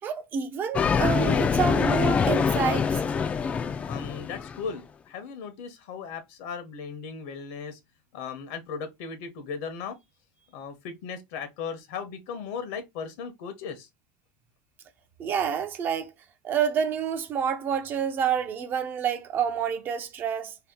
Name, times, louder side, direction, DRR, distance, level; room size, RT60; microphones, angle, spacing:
voice 1, 0.0-3.0 15.2-16.1 16.4-20.6, right 7 dB, 35° right, 0.5 m, -28 dB
sound 1, 0.7-4.7, left 6 dB, 20° left, 0.3 m, -25 dB
voice 2, 3.9-7.8 8.1-10.0 10.5-13.9, left 6 dB, 65° left, 0.8 m, -37 dB
2.8 x 2.2 x 3.5 m
supercardioid pair, 135°, 6 cm